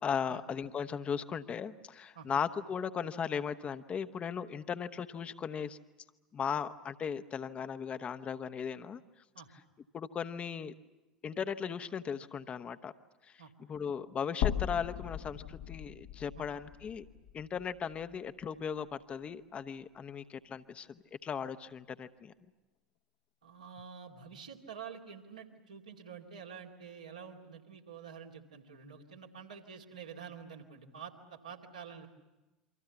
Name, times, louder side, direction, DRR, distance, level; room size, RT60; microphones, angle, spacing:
voice 1, 0.0-5.8 6.3-9.0 9.9-10.7 11.2-12.9 13.7-17.0 17.3-22.3, left 7 dB, 30° left, 11 dB, 1.0 m, -37 dB
sound 1, 14.4-18.6 18.9-19.0 20.4-20.5, left 11 dB, 55° left, 1.3 m, -38 dB
voice 2, 23.4-32.1, right 7 dB, 75° right, 0 dB, 2.5 m, -48 dB
28.5 x 24.5 x 7.1 m, 1.1 s
figure-of-eight pair, 70°, 4 cm